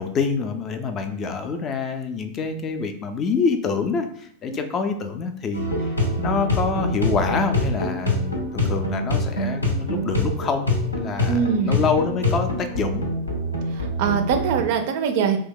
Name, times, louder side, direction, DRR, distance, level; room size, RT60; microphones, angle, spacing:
voice 1, 0.0-13.1, left 5 dB, 30° left, 6 dB, 0.3 m, -26 dB
sound 1, 5.5-14.6, left 1 dB, 80° left, 0.6 m, -25 dB
voice 2, 11.3-11.8 13.7-15.4, right 7 dB, 50° right, 6 dB, 0.4 m, -23 dB
2.8 x 2.1 x 3.6 m, 0.67 s
figure-of-eight pair, 90°, 0 cm